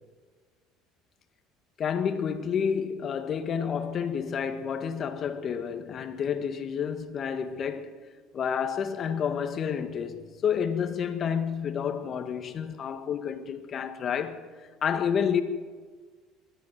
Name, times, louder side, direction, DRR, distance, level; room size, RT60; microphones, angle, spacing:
voice 1, 1.8-7.9 8.3-14.5 14.8-15.4, left 7 dB, 40° left, 1.7 m, -29 dB
23.0 x 13.0 x 9.3 m
cardioid pair, 125°, 0 cm